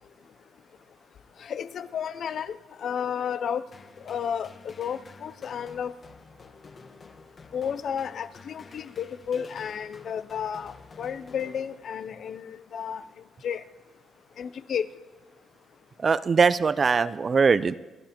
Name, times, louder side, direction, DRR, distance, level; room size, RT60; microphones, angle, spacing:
voice 1, 1.4-3.6 4.0-5.9 7.5-13.0 13.4-13.6 14.4-14.9, left 8 dB, 60° left, 14 dB, 0.5 m, -32 dB
sound 1, 3.7-12.2, left 4 dB, 40° left, 1.3 m, -50 dB
voice 2, 16.0-17.8, right 5 dB, 40° right, 16 dB, 0.4 m, -21 dB
27.5 x 10.5 x 3.0 m, 1.2 s
cardioid pair, 90°, 0 cm